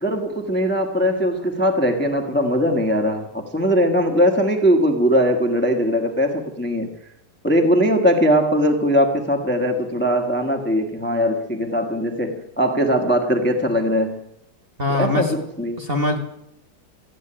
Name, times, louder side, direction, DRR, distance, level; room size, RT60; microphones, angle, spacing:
voice 1, 0.0-6.9 7.4-14.2 14.9-15.8, equal, 5° left, 1.0 m, -20 dB
voice 2, 14.8-15.4 15.8-16.2, left 1 dB, 30° right, 1.6 m, -22 dB
15.0 x 8.2 x 9.9 m
omnidirectional pair, 2.4 m